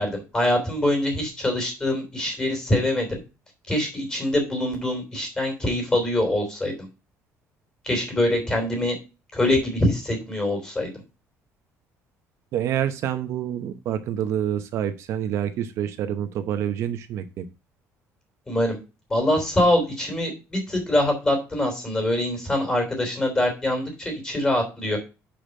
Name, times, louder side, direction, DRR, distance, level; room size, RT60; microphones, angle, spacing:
voice 1, 0.0-3.2 3.7-6.9 7.8-9.0 9.3-10.9 18.5-18.8 19.1-25.0, left 1 dB, 15° left, 3 dB, 3.1 m, -24 dB
voice 2, 12.5-17.5, right 10 dB, 55° right, 8 dB, 0.8 m, -27 dB
5.8 x 5.1 x 6.4 m, 0.30 s
cardioid pair, 175°, 6 cm